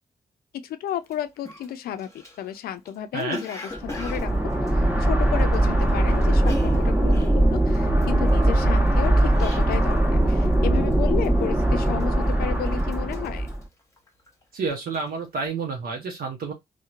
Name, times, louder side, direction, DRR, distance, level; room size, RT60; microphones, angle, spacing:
voice 1, 0.5-2.1 2.4-13.5, left 10 dB, 85° left, 0.4 m, -32 dB
Cough, 1.0-1.1 1.4-5.9 6.2-10.0 10.3-10.6 10.9-11.4 11.9-12.4 12.7-14.4 14.7-15.1, left 2 dB, 20° left, 1.0 m, -39 dB
sound 1, 3.8-13.6, right 1 dB, 10° right, 0.9 m, -21 dB
voice 2, 14.5-16.5, right 4 dB, 75° right, 0.6 m, -29 dB
2.9 x 2.1 x 2.4 m
supercardioid pair, 50°, 15 cm